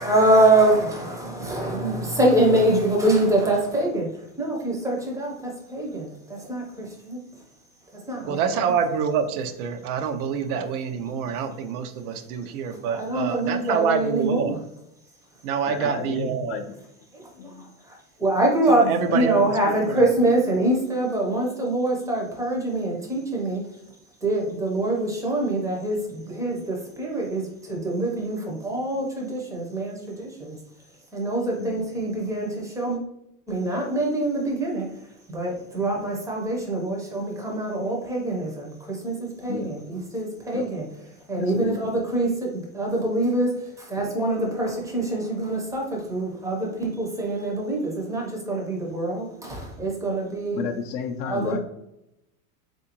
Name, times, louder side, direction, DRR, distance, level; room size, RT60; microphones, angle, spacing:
voice 1, 0.0-7.4 7.9-8.8 12.7-14.6 17.1-23.8 24.2-30.6 30.9-33.0 33.5-40.9 41.3-50.6 51.2-51.6, right 1 dB, 10° right, -1 dB, 0.6 m, -25 dB
voice 2, 8.2-14.5 15.4-16.6 18.9-19.5 19.9-20.0, right 6 dB, 85° right, 8 dB, 0.6 m, -26 dB
voice 3, 15.7-16.8 17.4-17.6 19.1-19.2 31.6-31.8 39.5-39.7 40.5-40.7 41.4-41.8 50.5-51.6, left 6 dB, 50° left, 5 dB, 0.5 m, -31 dB
3.5 x 2.6 x 2.9 m, 0.83 s
supercardioid pair, 140°, 43 cm